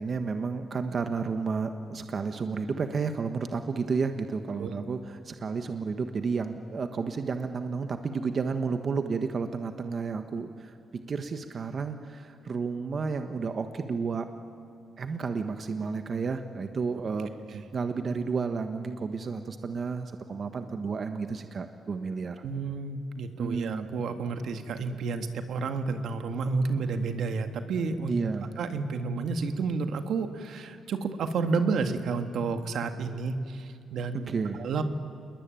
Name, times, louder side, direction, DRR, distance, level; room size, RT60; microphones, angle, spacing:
voice 1, 0.0-10.7 11.1-14.3 15.0-22.4 23.4-23.9 28.1-28.5 34.3-34.6, right 5 dB, 45° right, 7 dB, 1.3 m, -31 dB
voice 2, 22.4-28.2 28.6-34.3 34.6-34.8, right 4 dB, 70° right, 7 dB, 1.8 m, -30 dB
28.5 x 21.0 x 9.1 m, 2.4 s
cardioid pair, 110°, 0 cm